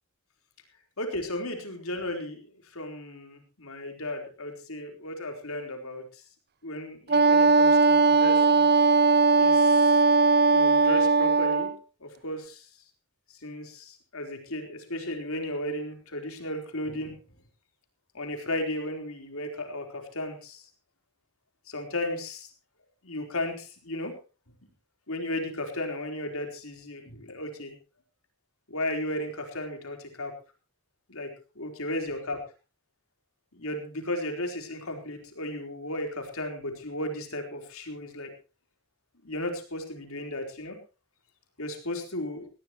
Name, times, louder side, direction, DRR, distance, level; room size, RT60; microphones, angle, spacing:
voice 1, 1.0-2.4 2.7-6.2 6.6-8.7 9.4-10.0 10.5-11.7 12.0-12.7 13.4-17.1 18.1-20.7 21.7-22.5 23.0-24.1 25.1-27.7 28.7-30.3 31.1-32.4 33.5-38.3 39.2-40.8 41.6-42.4, left 1 dB, 80° left, 4 dB, 4.1 m, -35 dB
Wind instrument woodwind instrument, 7.1-11.8, right 4 dB, 50° right, 0.8 m, -19 dB
19.5 x 16.5 x 3.1 m, 0.33 s
head